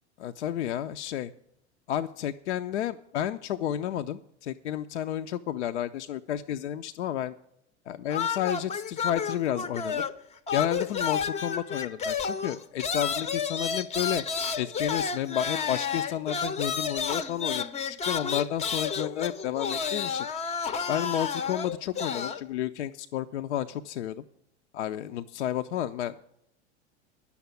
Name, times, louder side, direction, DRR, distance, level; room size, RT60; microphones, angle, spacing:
voice 1, 0.2-1.3 1.9-7.3 7.9-10.0 10.5-14.2 14.6-20.3 20.9-24.2 24.7-26.2, left 11 dB, 75° left, 8 dB, 0.5 m, -31 dB
sound 1, 8.1-10.2 10.5-22.4, left 6 dB, 20° left, 0.6 m, -31 dB
10.0 x 7.1 x 9.2 m, 0.77 s
figure-of-eight pair, 80°, 35 cm